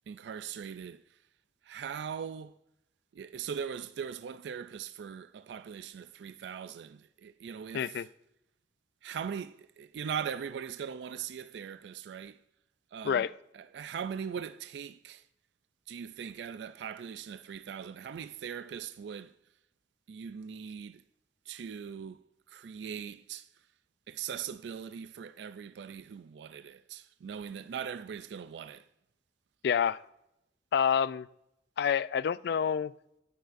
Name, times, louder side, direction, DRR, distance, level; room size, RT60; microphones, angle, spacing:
voice 1, 0.1-1.0 1.6-2.6 3.1-8.1 9.0-12.4 12.9-13.3 13.5-15.2 15.9-19.3 20.1-21.0 21.5-23.5 24.1-28.9, right 7 dB, 70° right, 0.3 m, -40 dB
voice 2, 7.7-8.1 13.0-13.3 29.6-30.0 30.7-31.3 31.8-32.9, left 7 dB, 60° left, 0.3 m, -28 dB
19.0 x 6.4 x 2.5 m
head